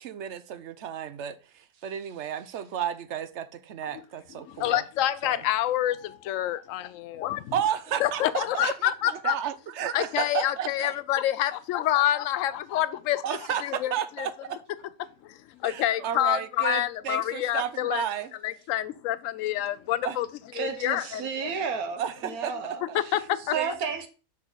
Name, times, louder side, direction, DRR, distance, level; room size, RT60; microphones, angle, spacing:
voice 1, 0.0-4.8 5.2-5.4 7.5-10.9 13.2-14.6 15.6-18.3 20.0-20.2 22.0-23.0 23.5-23.7, right 9 dB, 60° right, 0.9 m, -32 dB
voice 2, 4.4-7.5 8.0-9.3 9.9-13.2 13.6-14.3 15.2-18.1 18.4-20.3 20.6-21.5 22.8-23.5, left 13 dB, 70° left, 0.9 m, -27 dB
voice 3, 20.5-23.2 23.5-24.1, right 6 dB, 80° right, 1.5 m, -32 dB
6.2 x 6.0 x 4.0 m
omnidirectional pair, 1.5 m